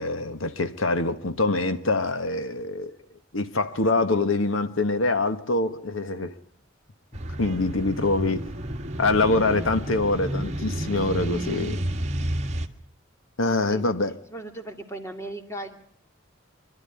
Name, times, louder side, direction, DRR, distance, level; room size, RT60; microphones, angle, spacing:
voice 1, 0.0-2.9 3.3-6.3 7.4-8.4 9.0-11.8 13.4-14.2, left 2 dB, 85° left, 1.4 m, -24 dB
sound 1, 7.1-12.7, right 1 dB, 35° right, 1.7 m, -30 dB
voice 2, 14.3-15.8, right 1 dB, 15° left, 2.2 m, -37 dB
26.5 x 12.5 x 9.9 m
head